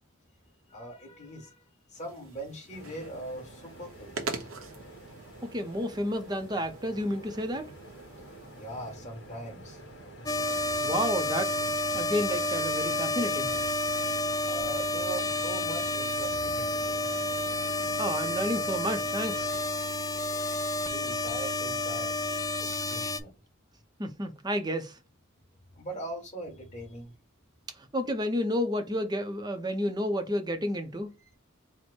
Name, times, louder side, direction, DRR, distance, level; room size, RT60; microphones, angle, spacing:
voice 1, 0.7-1.6 1.9-4.5 8.6-9.8 14.4-17.0 17.8-17.9 20.9-22.2 22.6-23.4 25.8-27.1, right 1 dB, 35° left, 1.6 m, -41 dB
sound 1, 1.9-8.9, right 3 dB, 75° right, 0.9 m, -44 dB
sound 2, 2.7-19.7, right 1 dB, 55° left, 1.8 m, -48 dB
voice 2, 5.4-7.7 10.8-11.7 11.9-13.5 18.0-19.6 24.0-25.0 27.8-31.1, equal, 20° right, 0.6 m, -31 dB
sound 3, 10.3-23.2, left 2 dB, 15° left, 0.3 m, -30 dB
4.3 x 2.1 x 4.4 m
head